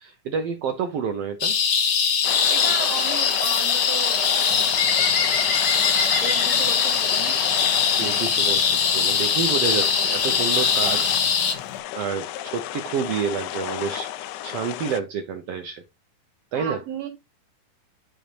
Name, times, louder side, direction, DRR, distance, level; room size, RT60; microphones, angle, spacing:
voice 1, 0.0-1.6 8.0-11.6 11.9-15.8 16.5-16.8, right 6 dB, 90° right, 1.3 m, -29 dB
sound 1, 1.4-11.5, left 6 dB, 60° left, 1.3 m, -21 dB
sound 2, 2.2-15.0, left 13 dB, 75° left, 2.0 m, -32 dB
voice 2, 2.5-4.7 5.7-7.4 16.5-17.1, right 7 dB, 55° right, 2.9 m, -34 dB
Bird, 4.5-11.8, left 5 dB, 45° left, 1.6 m, -35 dB
11.5 x 5.1 x 3.0 m
omnidirectional pair, 3.8 m